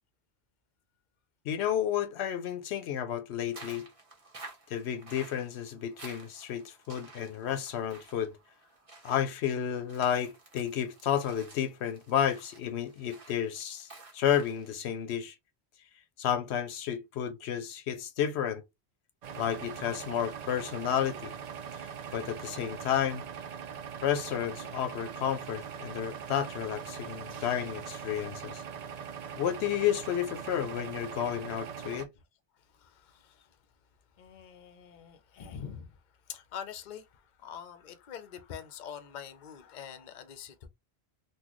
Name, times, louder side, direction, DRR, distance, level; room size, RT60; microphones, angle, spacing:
voice 1, 1.4-3.9 4.7-8.4 9.0-15.4 16.2-18.6 19.4-21.4 21.8-23.3 24.0-28.6 29.4-32.1, left 9 dB, 80° left, 0.9 m, -31 dB
sound 1, 3.5-14.8, right 2 dB, 35° right, 1.1 m, -52 dB
sound 2, 19.2-32.1, right 7 dB, 50° right, 0.5 m, -41 dB
voice 2, 32.8-33.5 34.2-35.9 36.3-40.7, left 8 dB, 50° left, 0.7 m, -45 dB
4.0 x 2.3 x 3.0 m
omnidirectional pair, 1.1 m